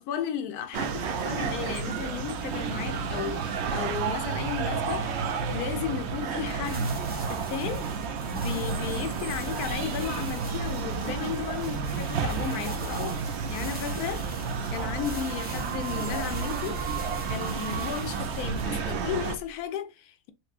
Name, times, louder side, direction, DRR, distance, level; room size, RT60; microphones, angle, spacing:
voice 1, 0.0-7.9 8.3-14.3 14.7-16.9 17.2-20.3, left 9 dB, 70° left, 1.0 m, -34 dB
sound 1, 0.7-19.4, right 6 dB, 80° right, 0.6 m, -31 dB
sound 2, 6.4-19.6, equal, 15° right, 0.3 m, -43 dB
4.3 x 2.1 x 2.4 m
omnidirectional pair, 1.8 m